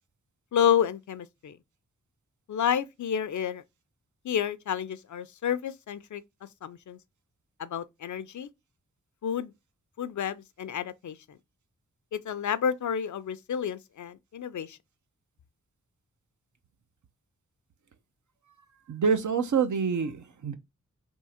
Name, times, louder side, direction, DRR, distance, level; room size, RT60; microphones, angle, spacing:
voice 1, 0.5-1.6 2.5-3.6 4.2-6.2 6.6-7.0 7.6-8.5 9.2-9.5 10.0-11.4 12.1-14.8, left 8 dB, 65° left, 0.5 m, -30 dB
voice 2, 18.9-20.6, right 6 dB, 65° right, 0.7 m, -26 dB
3.6 x 2.8 x 4.2 m
cardioid pair, 50°, 31 cm